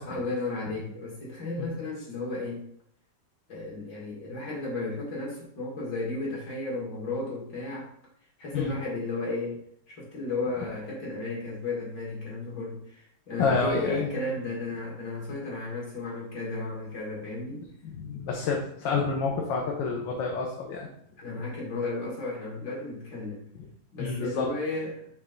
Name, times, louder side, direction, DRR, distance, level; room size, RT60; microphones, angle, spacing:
voice 1, 0.0-2.6 3.5-7.9 8.4-9.6 9.9-17.6 21.2-23.4 23.9-25.1, left 2 dB, 70° left, -4 dB, 2.6 m, -34 dB
voice 2, 13.4-14.1 17.8-20.9 24.0-24.5, left 4 dB, 85° left, 0 dB, 1.5 m, -28 dB
5.3 x 3.4 x 5.1 m, 0.67 s
omnidirectional pair, 2.0 m